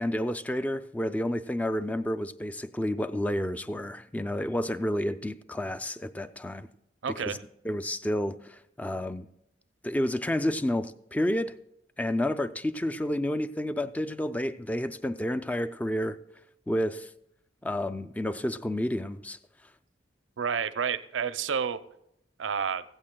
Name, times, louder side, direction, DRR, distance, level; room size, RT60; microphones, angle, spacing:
voice 1, 0.0-6.7 7.1-7.4 7.6-9.3 9.8-11.5 12.0-16.2 16.7-17.1 17.6-19.4, left 1 dB, 10° left, 0.3 m, -30 dB
voice 2, 7.0-7.4 20.4-21.8 22.4-22.8, right 6 dB, 90° right, 0.5 m, -30 dB
16.0 x 15.5 x 2.2 m
head